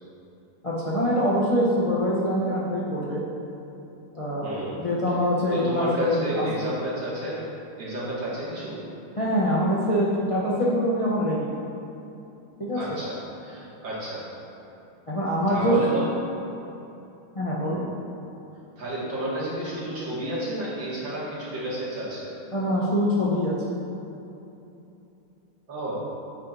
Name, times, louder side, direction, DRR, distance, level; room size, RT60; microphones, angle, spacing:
voice 1, 0.6-3.2 4.1-4.5 4.8-6.7 9.2-11.5 12.6-12.8 15.1-15.8 17.3-17.8 22.5-23.5, equal, 50° left, -7 dB, 0.4 m, -24 dB
voice 2, 4.4-4.8 5.5-7.4 7.8-8.8 12.7-13.2 13.4-14.2 15.5-16.1 17.6-17.8 18.8-22.3 25.7-25.9, right 1 dB, 60° right, -8 dB, 2.8 m, -31 dB
9.3 x 8.8 x 2.8 m, 2.9 s
omnidirectional pair, 2.4 m